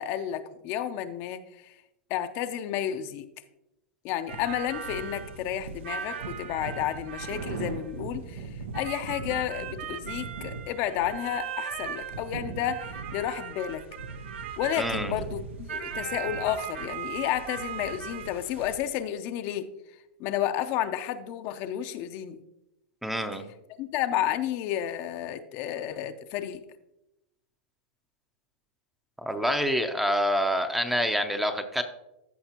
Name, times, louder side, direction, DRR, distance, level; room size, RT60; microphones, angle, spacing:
voice 1, 0.0-1.7 2.1-3.3 4.0-13.8 14.6-19.7 20.2-22.4 23.8-26.6, left 11 dB, 45° left, 9 dB, 0.6 m, -31 dB
sound 1, 4.3-18.8, right 6 dB, 90° right, 0.9 m, -37 dB
voice 2, 14.8-15.1 23.0-23.4 29.2-31.8, equal, 5° right, 7 dB, 0.6 m, -27 dB
14.5 x 5.3 x 2.9 m, 0.89 s
supercardioid pair, 140°, 6 cm